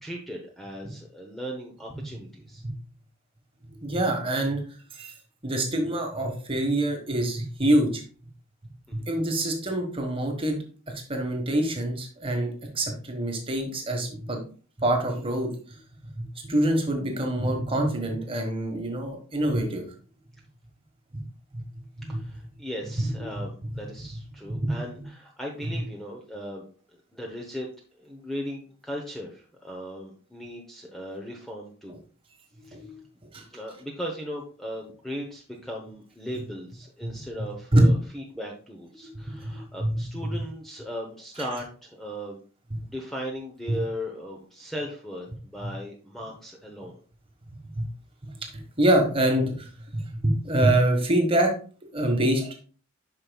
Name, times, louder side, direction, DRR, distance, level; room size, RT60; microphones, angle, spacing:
voice 1, 0.0-2.6 8.9-9.0 22.1-27.7 27.9-31.9 32.7-32.8 33.5-42.4 42.8-47.0, equal, ahead, 0 dB, 0.8 m, -37 dB
voice 2, 3.8-4.6 4.9-5.1 5.4-8.0 8.9-10.6 11.1-14.4 14.8-15.5 16.2-19.8 21.5-21.6 22.0-22.2 23.0-23.1 23.7-23.8 24.5-24.8 32.6-33.0 33.3-33.4 37.0-37.1 37.7-37.9 39.3-39.9 43.7-43.8 47.8-47.9 48.8-51.5 51.9-52.5, right 1 dB, 25° right, 3 dB, 1.4 m, -25 dB
8.6 x 5.9 x 2.3 m, 0.39 s
head